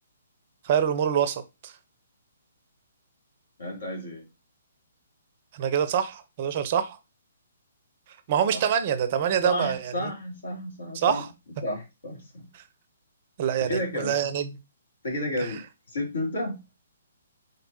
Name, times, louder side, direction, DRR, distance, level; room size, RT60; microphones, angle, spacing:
voice 1, 0.6-1.7 5.5-7.0 8.3-10.1 10.9-11.3 12.5-12.6 13.4-14.6 15.4-15.6, right 8 dB, 40° right, 0.5 m, -26 dB
voice 2, 3.6-4.2 8.5-8.6 9.4-11.2 11.6-12.5 13.7-14.1 15.0-15.6 15.9-16.6, left 1 dB, 65° left, 2.3 m, -31 dB
4.5 x 3.9 x 2.7 m
figure-of-eight pair, 125°, 0 cm